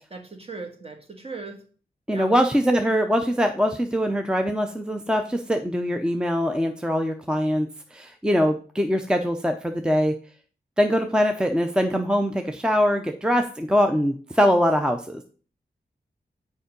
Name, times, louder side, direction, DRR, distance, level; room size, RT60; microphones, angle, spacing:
voice 1, 0.1-1.6 2.1-2.3, right 3 dB, 35° right, 4 dB, 1.6 m, -38 dB
voice 2, 2.1-7.7 7.9-10.1 10.8-15.2, equal, 5° right, 6 dB, 0.5 m, -22 dB
6.9 x 4.7 x 5.1 m, 0.41 s
wide cardioid pair, 100°, 17 cm